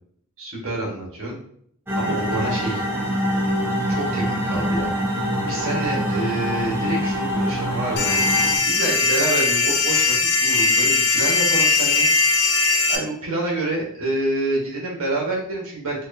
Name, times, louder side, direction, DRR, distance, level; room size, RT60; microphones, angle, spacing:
voice 1, 0.4-1.4 2.0-2.8 3.9-4.9 5.4-8.2 8.6-10.2 10.4-12.1 12.9-16.0, right 2 dB, 65° right, -3 dB, 1.2 m, -27 dB
sound 1, 1.9-8.6, equal, 10° right, 0.6 m, -24 dB
sound 2, 8.0-13.0, left 3 dB, 65° left, 0.6 m, -19 dB
4.4 x 2.3 x 2.6 m, 0.66 s
head